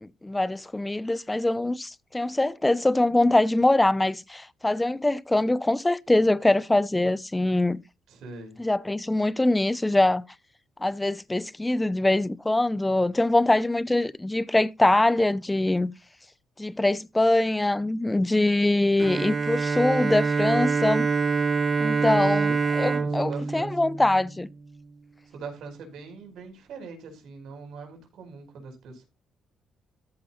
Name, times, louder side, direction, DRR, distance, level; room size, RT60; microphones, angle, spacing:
voice 1, 0.0-7.8 8.6-10.2 10.8-15.9 16.6-21.1 21.8-24.5, left 2 dB, 15° left, 0.7 m, -23 dB
voice 2, 8.1-8.6 22.8-23.9 25.3-29.1, right 4 dB, 80° right, 5.0 m, -42 dB
Bowed string instrument, 19.0-24.7, right 4 dB, 40° right, 0.8 m, -25 dB
13.5 x 5.3 x 4.4 m
cardioid pair, 90°, 0 cm